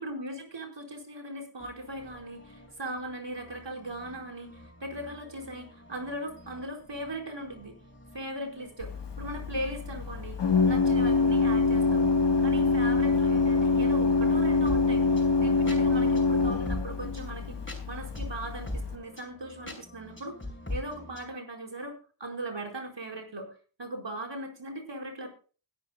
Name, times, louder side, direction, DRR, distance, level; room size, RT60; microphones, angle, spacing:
voice 1, 0.0-7.7 8.1-8.9 9.2-10.4 10.7-12.2 12.4-15.0 15.4-17.6 17.9-20.4 20.7-23.5 23.8-25.3, right 1 dB, 60° right, 2 dB, 4.9 m, -38 dB
sound 1, 1.6-21.3, left 1 dB, 25° left, 5.6 m, -44 dB
Organ, 8.8-19.0, left 3 dB, 60° left, 1.7 m, -25 dB
20.5 x 12.0 x 2.3 m, 0.37 s
wide cardioid pair, 85°, 48 cm